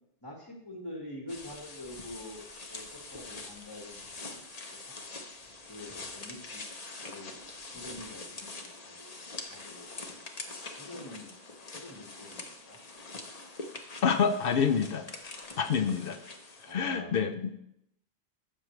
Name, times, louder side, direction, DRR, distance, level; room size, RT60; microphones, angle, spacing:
voice 1, 0.2-4.4 4.7-4.8 5.7-6.6 7.0-7.4 7.7-8.5 8.8-9.1 9.5-10.0 10.8-11.3 11.7-12.8 15.5-15.9 16.6-17.1, left 1 dB, 20° left, 0 dB, 1.4 m, -46 dB
sound 1, 1.3-16.7, left 3 dB, 40° left, 1.0 m, -44 dB
voice 2, 14.0-15.1 15.6-16.2 16.7-17.5, left 6 dB, 65° left, 8 dB, 0.8 m, -27 dB
12.5 x 7.5 x 3.1 m, 0.77 s
omnidirectional pair, 1.1 m